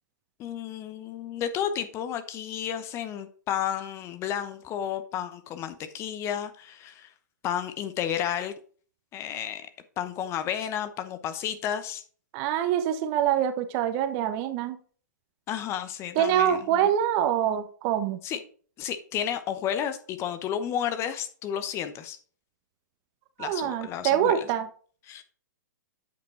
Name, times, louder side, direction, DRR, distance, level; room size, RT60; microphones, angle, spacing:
voice 1, 0.4-7.1 7.4-8.5 9.1-9.7 10.0-12.0 15.5-16.9 18.2-18.4 18.8-22.2 23.4-24.5 25.1-25.2, left 9 dB, 25° left, 10 dB, 0.8 m, -32 dB
voice 2, 12.3-14.8 16.1-18.2 23.4-24.7, right 10 dB, 35° right, 9 dB, 1.0 m, -25 dB
8.4 x 5.2 x 4.3 m, 0.43 s
figure-of-eight pair, 115°, 10 cm